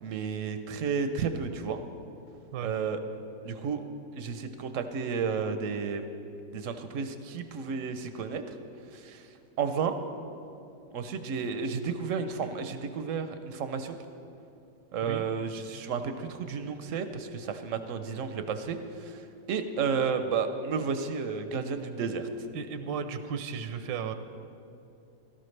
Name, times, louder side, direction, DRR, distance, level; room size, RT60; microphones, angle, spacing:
voice 1, 0.0-1.8 2.6-3.0 3.4-3.8 4.1-6.1 6.5-8.5 8.9-9.2 9.6-9.9 10.9-14.0 14.9-19.2 19.5-22.3, right 5 dB, 65° right, 8 dB, 0.8 m, -32 dB
voice 2, 22.5-24.1, right 6 dB, 85° right, 9 dB, 1.3 m, -34 dB
17.0 x 13.0 x 3.2 m, 2.6 s
omnidirectional pair, 1.9 m